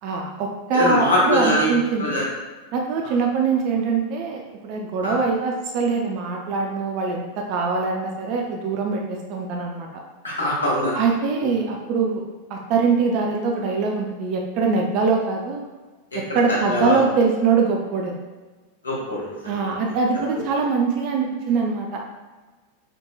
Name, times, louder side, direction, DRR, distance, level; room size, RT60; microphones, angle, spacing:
voice 1, 0.0-2.2 2.7-9.9 10.9-12.2 12.5-15.6 16.1-18.1 19.4-22.0, right 4 dB, 45° right, 1 dB, 0.4 m, -23 dB
voice 2, 0.7-1.7 2.0-2.2 5.0-5.1 10.2-11.0 11.4-11.5 16.3-16.4 16.7-17.0 18.8-19.7, left 1 dB, 80° left, -7 dB, 1.5 m, -22 dB
5.1 x 2.9 x 2.2 m, 1.3 s
figure-of-eight pair, 90°, 0 cm